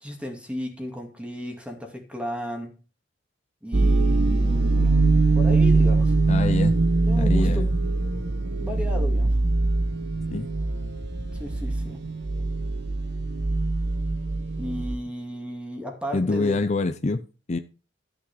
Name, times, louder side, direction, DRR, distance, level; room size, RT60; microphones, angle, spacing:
voice 1, 0.0-2.7 3.6-5.0 5.3-6.7 7.1-7.6 8.6-9.3 11.3-12.0 14.6-16.6, equal, 5° right, 2.3 m, -34 dB
sound 1, 3.7-15.0, right 3 dB, 70° right, 1.0 m, -22 dB
voice 2, 6.3-6.7 7.2-7.7 10.3-10.5 16.1-17.2 17.5-17.6, left 3 dB, 40° left, 0.6 m, -25 dB
13.0 x 6.1 x 4.9 m
head